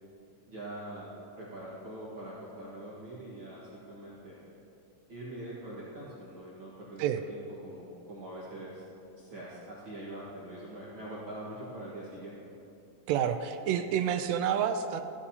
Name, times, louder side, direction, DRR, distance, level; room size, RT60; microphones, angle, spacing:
voice 1, 0.5-1.1 1.4-4.4 5.1-8.8 9.2-12.4, right 1 dB, 45° right, -8 dB, 2.0 m, -43 dB
voice 2, 13.1-15.0, right 9 dB, 90° right, 7 dB, 1.5 m, -29 dB
15.0 x 11.0 x 2.8 m, 2.8 s
omnidirectional pair, 3.6 m